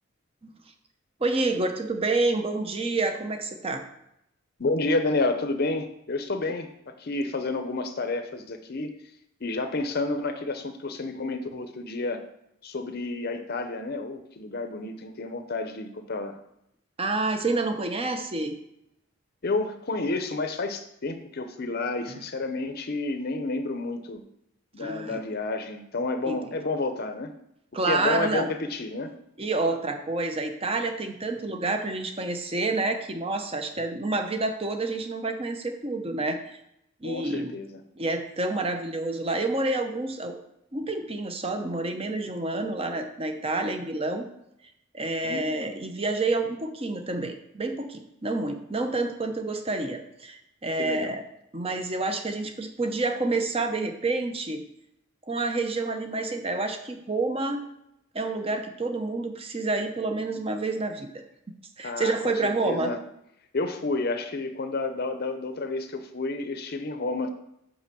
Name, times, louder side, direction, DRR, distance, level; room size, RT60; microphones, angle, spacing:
voice 1, 1.2-3.8 17.0-18.6 24.8-25.2 26.3-26.4 27.7-28.5 29.4-36.4 37.0-37.5 38.0-40.4 40.7-44.3 44.9-51.2 51.5-54.6 55.3-57.6 58.1-61.2 61.8-62.9, right 2 dB, 30° right, 6 dB, 0.8 m, -28 dB
voice 2, 4.6-8.9 9.4-12.2 12.6-16.4 19.4-24.2 24.7-27.3 27.9-29.1 37.0-37.8 45.2-45.7 50.8-51.2 61.8-62.3 62.6-63.0 63.5-67.3, left 3 dB, 50° left, 7 dB, 0.7 m, -30 dB
5.9 x 5.3 x 6.8 m, 0.81 s
head